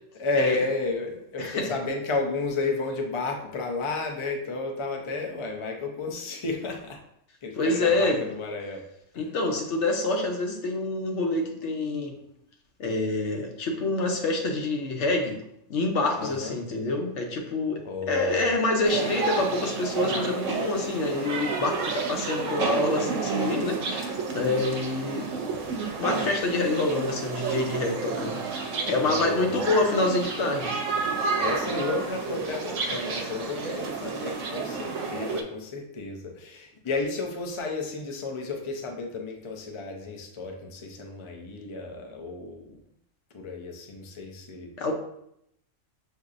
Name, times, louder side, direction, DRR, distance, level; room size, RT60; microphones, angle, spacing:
voice 1, 0.1-7.0 7.4-8.8 9.1-9.3 16.2-16.5 17.8-18.6 29.0-29.7 31.4-42.8 43.3-44.7, left 3 dB, 45° left, 2 dB, 0.4 m, -32 dB
voice 2, 1.4-1.8 7.6-8.2 9.2-12.2 12.8-15.4 15.7-25.3 26.0-28.4 28.9-30.7 44.8-44.9, left 2 dB, 70° left, 3 dB, 1.0 m, -27 dB
sound 1, 18.8-35.4, right 4 dB, 80° right, 1.0 m, -30 dB
6.4 x 2.7 x 2.5 m, 0.76 s
omnidirectional pair, 1.3 m